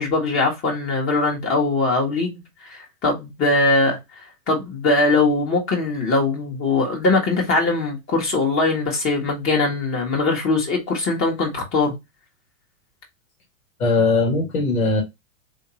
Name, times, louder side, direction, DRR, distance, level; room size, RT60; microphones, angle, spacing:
voice 1, 0.0-11.9, left 3 dB, 30° left, 1.3 m, -21 dB
voice 2, 13.8-15.0, left 3 dB, 80° left, 1.6 m, -19 dB
3.6 x 2.8 x 2.8 m
hypercardioid pair, 110°, 42 cm